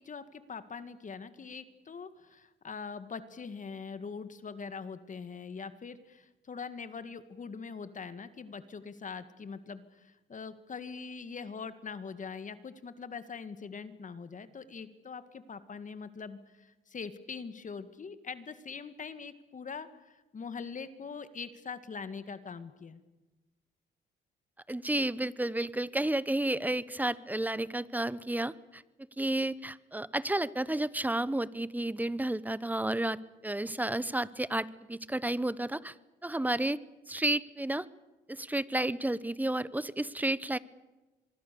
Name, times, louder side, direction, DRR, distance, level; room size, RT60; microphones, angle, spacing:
voice 1, 0.0-23.0, left 5 dB, 40° left, 12 dB, 1.9 m, -43 dB
voice 2, 24.7-28.8 29.2-33.2 33.4-35.9 36.2-36.8 37.1-37.9 38.3-40.6, right 1 dB, 10° right, 18 dB, 0.9 m, -31 dB
25.5 x 22.5 x 6.9 m, 1.1 s
cardioid pair, 90°, 20 cm